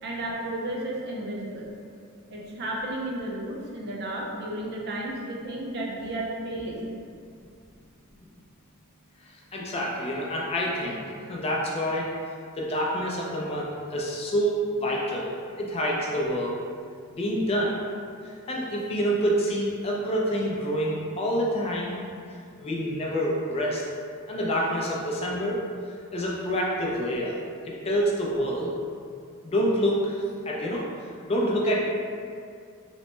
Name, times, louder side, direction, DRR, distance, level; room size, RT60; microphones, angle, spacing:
voice 1, 0.0-1.6 2.3-6.9, right 1 dB, 50° right, -3 dB, 0.5 m, -33 dB
voice 2, 9.5-11.0 11.3-12.1 12.6-16.5 17.1-17.8 18.5-21.9 22.6-23.8 24.3-25.6 26.1-27.4 27.7-28.7 29.4-30.2 30.5-30.8 31.3-31.8, equal, 25° left, -3 dB, 0.3 m, -27 dB
2.9 x 2.1 x 3.0 m, 2.3 s
head